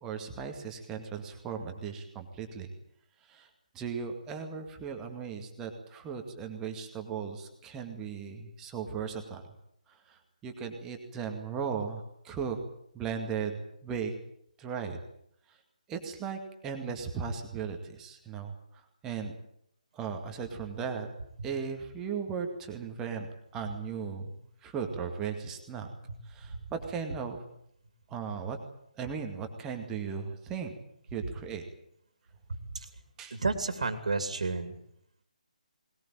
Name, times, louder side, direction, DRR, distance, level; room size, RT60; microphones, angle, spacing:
voice 1, 0.0-2.7 3.2-3.5 3.7-9.4 9.9-12.6 12.9-14.1 14.6-15.0 15.5-15.6 15.9-19.3 19.9-21.1 21.4-23.3 23.5-24.3 24.6-25.9 26.2-27.4 28.1-28.6 28.9-30.7 31.1-31.6 33.2-33.4, right 6 dB, 10° right, 4 dB, 2.2 m, -37 dB
voice 2, 33.3-34.7, right 3 dB, 55° right, 9 dB, 2.9 m, -31 dB
20.5 x 19.5 x 9.0 m, 0.71 s
figure-of-eight pair, 145°, 4 cm